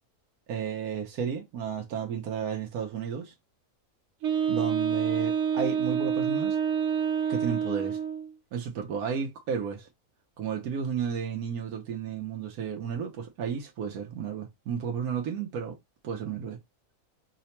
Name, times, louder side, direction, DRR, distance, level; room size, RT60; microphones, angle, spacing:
voice 1, 0.5-3.3 4.5-6.6 7.3-8.0 8.5-9.9 10.4-15.8 16.0-16.6, right 7 dB, 90° right, 1.2 m, -33 dB
Wind instrument woodwind instrument, 4.2-8.3, right 8 dB, 60° right, 0.9 m, -27 dB
4.8 x 2.1 x 2.8 m
omnidirectional pair, 1.5 m